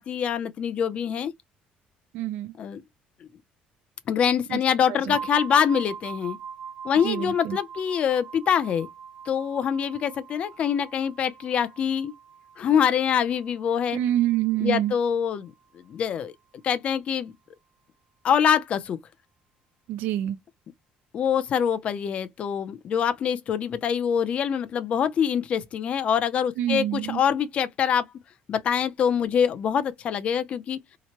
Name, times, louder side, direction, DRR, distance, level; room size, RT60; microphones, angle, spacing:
voice 1, 0.0-1.3 2.6-2.8 4.1-6.4 6.8-8.9 9.3-12.1 12.6-14.0 14.6-15.5 15.9-16.3 16.6-17.3 18.2-19.0 21.1-28.0 28.5-30.8, left 8 dB, 40° left, 0.4 m, -24 dB
voice 2, 2.1-2.5 4.5-4.6 4.9-5.2 7.0-7.6 13.9-14.9 19.9-20.4 26.6-27.2, right 13 dB, 75° right, 0.3 m, -26 dB
sound 1, 5.1-14.7, right 7 dB, 40° right, 1.0 m, -42 dB
2.9 x 2.1 x 2.8 m
cardioid pair, 165°, 3 cm